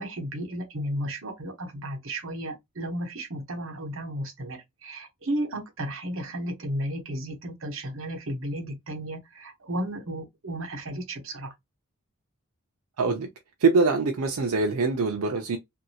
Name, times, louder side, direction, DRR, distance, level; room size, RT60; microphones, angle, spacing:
voice 1, 0.0-11.5, right 1 dB, 60° right, 0.9 m, -34 dB
voice 2, 13.0-13.3 13.6-15.6, right 4 dB, 80° right, 0.5 m, -23 dB
3.0 x 2.6 x 2.7 m
head